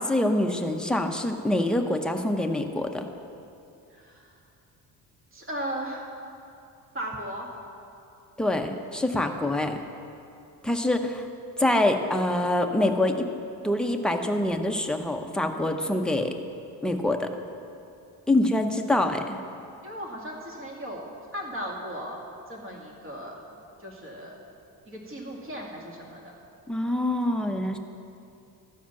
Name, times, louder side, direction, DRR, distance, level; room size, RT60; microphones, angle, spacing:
voice 1, 0.0-3.1 8.4-9.8 10.6-11.3 11.6-13.3 13.6-16.3 16.8-17.3 18.3-19.4 26.7-27.8, left 1 dB, ahead, 3 dB, 0.6 m, -25 dB
voice 2, 3.9-4.4 5.3-6.1 6.9-7.5 19.8-21.1 21.3-22.2 22.5-23.4 23.8-24.4 24.9-26.2, equal, 30° right, -1 dB, 2.1 m, -36 dB
13.0 x 5.0 x 7.0 m, 2.7 s
cardioid pair, 110°, 40 cm